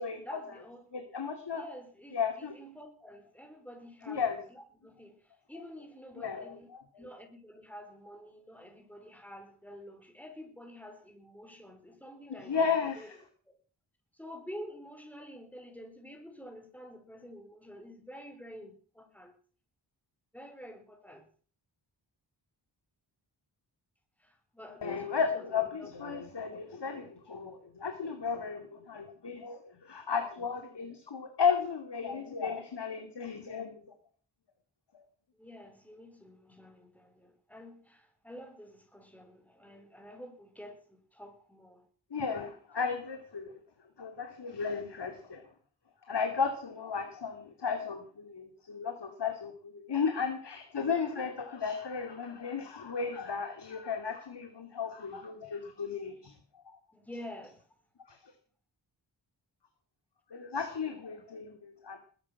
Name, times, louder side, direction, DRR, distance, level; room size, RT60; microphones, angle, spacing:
voice 1, 0.0-0.8 1.5-6.7 7.0-12.6 13.0-13.1 13.5-13.6 14.1-19.3 20.3-21.3 24.2-26.2 35.4-41.9 50.8-51.3 56.9-57.6, equal, 5° left, 4.5 m, -49 dB
voice 2, 0.9-1.6 2.1-2.5 4.1-4.4 6.2-6.8 12.5-13.2 24.8-33.7 34.9-35.0 42.1-43.5 44.0-45.4 46.1-56.3 56.7-56.8 58.1-58.2 60.3-62.0, left 6 dB, 60° left, 2.4 m, -34 dB
20.5 x 11.0 x 5.9 m
wide cardioid pair, 100°, 45 cm